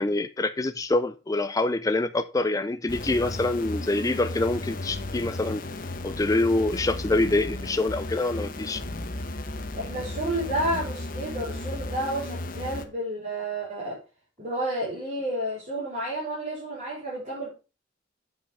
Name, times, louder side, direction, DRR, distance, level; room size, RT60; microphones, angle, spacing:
voice 1, 0.0-5.6 6.0-8.8, left 2 dB, 20° left, 0.4 m, -25 dB
sound 1, 2.9-12.9, left 2 dB, 45° left, 1.0 m, -34 dB
voice 2, 9.7-14.0 14.4-17.5, right 1 dB, 40° right, 4.6 m, -31 dB
8.9 x 5.5 x 5.4 m
head